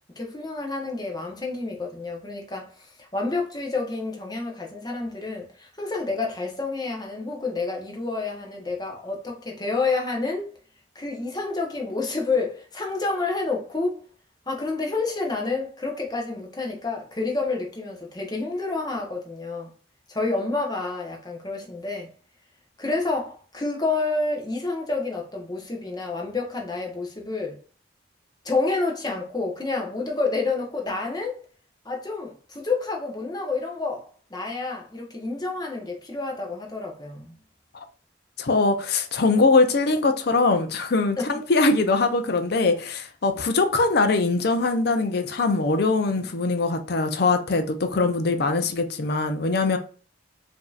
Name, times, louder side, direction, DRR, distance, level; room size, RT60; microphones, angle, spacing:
voice 1, 0.2-10.5 10.9-14.0 14.5-19.7 20.1-22.1 22.8-27.6 28.4-31.4 31.8-37.3 41.2-41.3, left 3 dB, 20° left, 0.9 m, -29 dB
voice 2, 38.4-49.8, left 3 dB, 55° left, 0.5 m, -22 dB
5.1 x 2.7 x 2.4 m
head